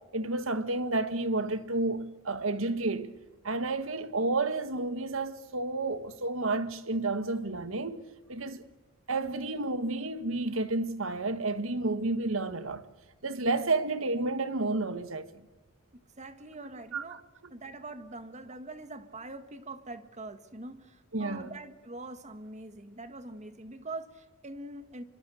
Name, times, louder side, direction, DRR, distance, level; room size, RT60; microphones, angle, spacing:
voice 1, 0.1-3.1 3.4-8.0 8.3-8.6 9.1-12.8 13.2-15.5 16.9-17.0 21.1-21.6, right 2 dB, 75° right, 1.7 m, -31 dB
voice 2, 15.9-17.2 17.5-25.0, right 2 dB, 35° right, 1.8 m, -43 dB
27.0 x 25.0 x 6.6 m
head